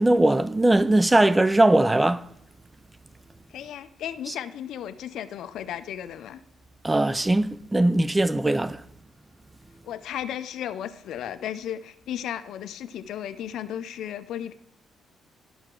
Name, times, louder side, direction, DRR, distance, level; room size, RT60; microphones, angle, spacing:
voice 1, 0.0-2.3 4.3-4.4 6.8-8.8, right 1 dB, 15° right, 0.3 m, -20 dB
voice 2, 3.5-6.4 9.8-14.5, left 10 dB, 75° left, 0.5 m, -34 dB
11.5 x 4.7 x 3.7 m
cardioid pair, 90°, 0 cm